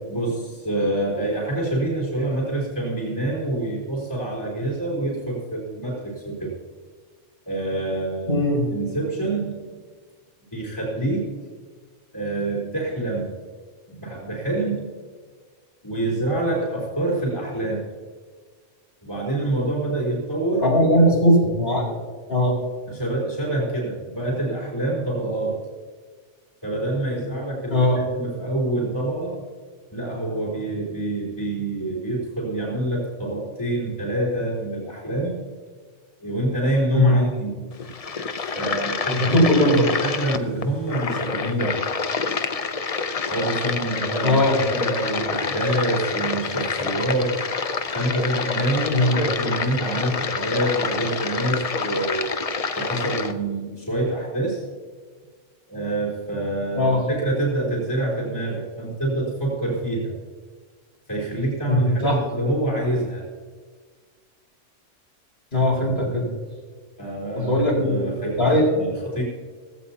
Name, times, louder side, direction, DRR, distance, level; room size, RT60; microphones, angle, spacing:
voice 1, 0.1-6.5 7.5-8.4 8.7-9.8 10.5-11.3 12.1-13.3 13.9-14.9 15.8-17.9 19.0-20.7 22.9-25.7 26.6-29.4 29.9-35.4 36.2-37.7 38.5-41.8 43.3-44.4 44.7-47.5 47.9-52.4 52.8-54.7 55.7-60.1 61.1-63.2 67.0-69.2, right 1 dB, 20° left, -5 dB, 4.0 m, -26 dB
voice 2, 8.3-8.6 20.6-21.9 22.3-22.6 27.7-28.0 36.9-37.2 39.1-39.9 44.2-44.6 48.9-49.2 56.8-57.0 61.7-62.2 65.5-66.3 67.3-68.0 68.4-68.7, left 1 dB, 55° left, -5 dB, 5.3 m, -19 dB
sound 1, 37.7-53.3, left 4 dB, 35° left, 0.7 m, -27 dB
17.5 x 16.0 x 2.9 m, 1.6 s
omnidirectional pair, 1.2 m